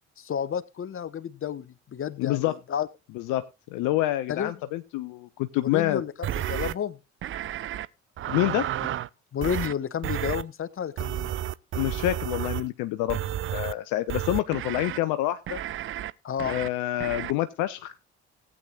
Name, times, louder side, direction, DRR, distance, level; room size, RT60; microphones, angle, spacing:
voice 1, 0.2-2.9 4.3-4.5 5.6-7.0 9.3-11.3 16.2-16.6, left 8 dB, 40° left, 15 dB, 1.1 m, -31 dB
voice 2, 2.2-2.5 3.1-6.0 8.3-8.7 11.7-13.2 13.5-15.6 16.4-17.9, left 15 dB, 65° left, 12 dB, 0.7 m, -27 dB
sound 1, 6.2-6.7 7.2-7.9 8.2-9.1 9.4-9.7 10.0-10.4 11.0-12.7 13.1-13.7 14.1-15.0 15.5-16.1 16.4-16.7 17.0-17.3, right 12 dB, 35° right, 0.5 m, -31 dB
18.5 x 8.6 x 2.4 m, 0.27 s
hypercardioid pair, 50°, 35 cm